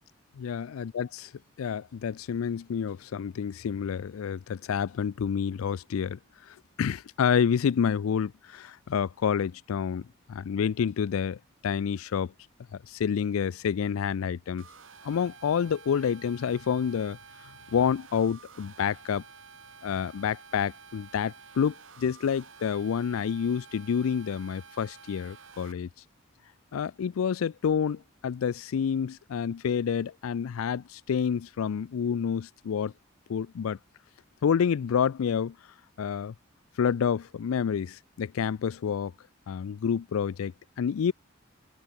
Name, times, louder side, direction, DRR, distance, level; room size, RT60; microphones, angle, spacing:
voice 1, 0.4-1.3 1.6-6.2 6.5-12.3 12.9-14.6 15.0-17.2 17.7-19.2 19.8-25.9 26.7-32.9 33.3-33.8 34.4-35.6 36.0-36.3 36.8-39.1 39.5-41.1, left 7 dB, 85° left, 0.4 m, -28 dB
sound 1, 14.6-25.7, right 5 dB, 70° right, 3.4 m, -51 dB
head